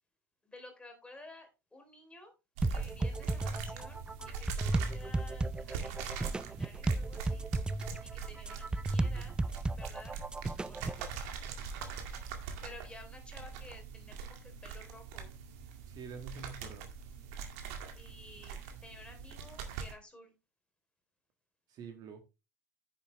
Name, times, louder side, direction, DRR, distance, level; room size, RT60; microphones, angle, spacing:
voice 1, 0.4-2.3 2.7-7.5 8.0-9.4 9.7-10.2 10.6-11.0 12.6-15.3 17.9-20.3, left 2 dB, 10° left, 3.3 m, -53 dB
sound 1, 2.6-11.1, right 2 dB, 10° right, 0.4 m, -34 dB
sound 2, 2.6-19.9, right 6 dB, 60° right, 2.0 m, -43 dB
voice 2, 15.9-16.9 21.7-22.2, right 5 dB, 40° right, 1.7 m, -46 dB
9.6 x 7.4 x 3.2 m
figure-of-eight pair, 80°, 10 cm